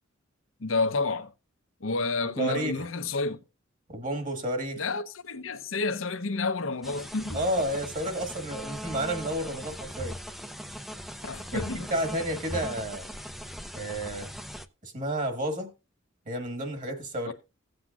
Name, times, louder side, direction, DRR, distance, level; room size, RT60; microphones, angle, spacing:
voice 1, 0.6-1.3 1.8-3.4 4.8-7.4 11.2-11.9 17.3-17.4, left 3 dB, 70° left, 0.9 m, -30 dB
voice 2, 2.4-2.8 3.9-4.8 7.3-10.2 11.5-13.1 13.8-14.3 14.8-15.7 16.3-17.3, right 1 dB, 40° right, 1.7 m, -31 dB
sound 1, 6.8-14.7, equal, ahead, 0.5 m, -39 dB
16.5 x 7.8 x 2.5 m
head